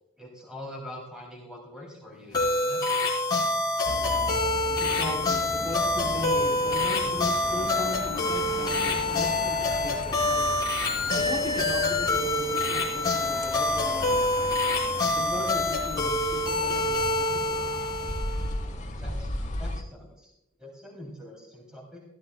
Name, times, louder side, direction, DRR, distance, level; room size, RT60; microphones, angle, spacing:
voice 1, 0.2-2.8 19.0-19.3 19.6-20.3 20.6-22.0, left 1 dB, 5° right, -2 dB, 2.9 m, -43 dB
sound 1, 2.3-18.5, left 2 dB, 20° left, 3.9 m, -26 dB
sound 2, 3.8-19.8, left 1 dB, 35° left, 1.2 m, -37 dB
voice 2, 4.8-10.5 11.0-14.6 15.1-17.6, left 1 dB, 25° right, 0 dB, 3.1 m, -37 dB
17.5 x 13.0 x 2.2 m, 0.79 s
head